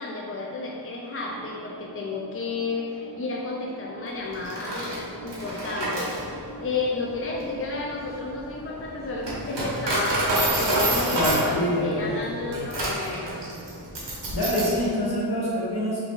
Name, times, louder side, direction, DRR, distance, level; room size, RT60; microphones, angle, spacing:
voice 1, 0.0-6.1 6.3-13.3, left 3 dB, 35° left, -2 dB, 0.4 m, -32 dB
sound 1, 1.2-10.1, right 2 dB, 45° right, 1.1 m, -45 dB
Coin (dropping), 4.3-14.8, right 1 dB, 75° right, 1.2 m, -28 dB
voice 2, 11.1-12.7 14.3-16.0, equal, 60° left, -7 dB, 1.4 m, -26 dB
4.7 x 3.0 x 3.6 m, 2.6 s
wide cardioid pair, 80°, 42 cm